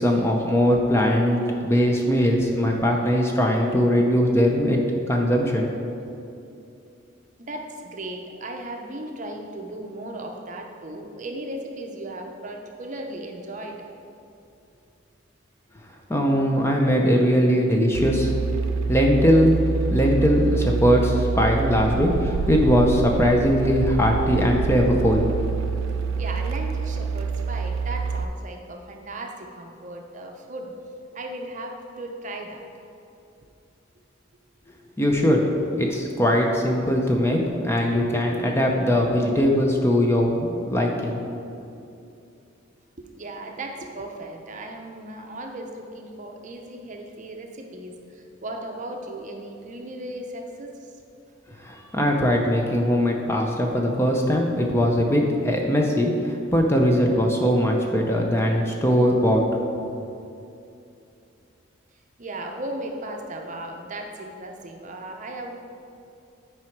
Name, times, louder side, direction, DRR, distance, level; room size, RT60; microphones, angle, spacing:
voice 1, 0.0-4.8 5.1-5.7 16.1-18.3 18.9-19.6 19.9-25.3 35.0-35.4 35.8-41.2 51.6-59.6, equal, 15° left, 1 dB, 0.6 m, -20 dB
voice 2, 7.4-13.9 26.2-30.7 31.1-32.6 43.0-50.9 62.2-65.6, right 1 dB, 40° right, 2 dB, 0.6 m, -36 dB
sound 1, 18.0-28.2, right 5 dB, 80° right, 0.3 m, -26 dB
8.9 x 4.8 x 4.5 m, 2.7 s
head